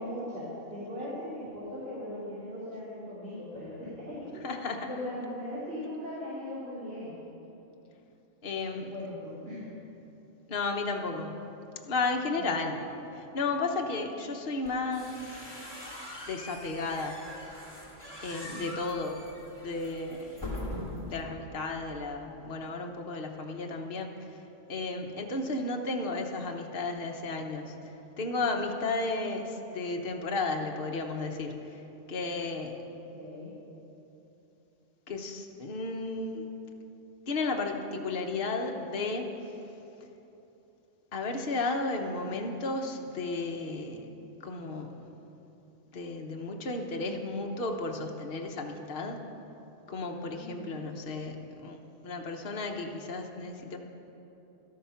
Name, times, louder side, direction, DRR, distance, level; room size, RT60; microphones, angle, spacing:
voice 1, 0.0-7.2 8.7-9.7 12.4-12.7 18.4-18.8 32.9-33.5 50.3-50.8, left 1 dB, 50° right, -10 dB, 3.5 m, -39 dB
voice 2, 4.4-4.9 8.4-8.9 10.5-11.5 11.8-12.8 13.3-15.5 16.3-17.2 18.2-19.3 19.6-20.3 21.1-24.1 24.7-27.7 28.2-31.8 32.1-32.8 35.1-36.5 37.3-39.3 41.1-44.1 44.4-45.0 45.9-49.2 49.9-53.8, left 3 dB, 50° left, 2 dB, 1.2 m, -33 dB
sound 1, 14.6-21.2, left 1 dB, 20° left, 2.3 m, -42 dB
12.5 x 12.5 x 5.8 m, 3.0 s
omnidirectional pair, 1.3 m